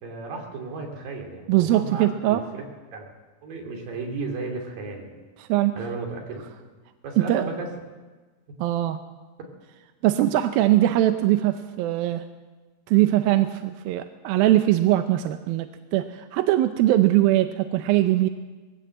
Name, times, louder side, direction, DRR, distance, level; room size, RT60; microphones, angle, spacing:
voice 1, 0.0-2.6 2.9-3.1 3.4-5.1 5.8-6.4 7.0-7.7, right 3 dB, 60° right, 1 dB, 4.6 m, -34 dB
voice 2, 1.5-2.4 5.4-5.7 7.2-7.5 8.6-9.0 10.0-12.3 12.9-18.3, right 14 dB, 75° right, 8 dB, 2.3 m, -21 dB
20.5 x 16.5 x 7.8 m, 1.3 s
omnidirectional pair, 4.8 m